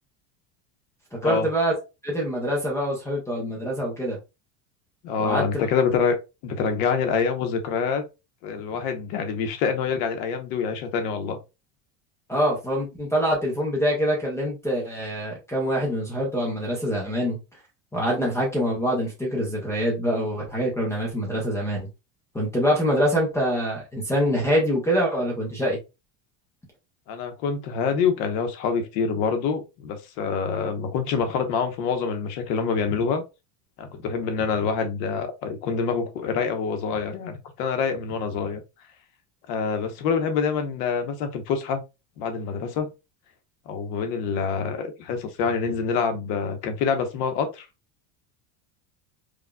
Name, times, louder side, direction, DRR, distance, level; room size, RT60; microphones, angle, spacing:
voice 1, 1.1-1.7 2.0-4.2 5.2-5.6 12.3-17.4 17.9-21.9 22.3-25.8, equal, 5° left, 0.5 m, -25 dB
voice 2, 5.0-6.2 6.4-8.0 8.4-11.4 27.1-33.2 33.8-38.6 39.5-41.8 42.2-42.9 43.7-47.7, left 5 dB, 75° left, 1.0 m, -26 dB
5.0 x 2.3 x 2.2 m
cardioid pair, 175°, 48 cm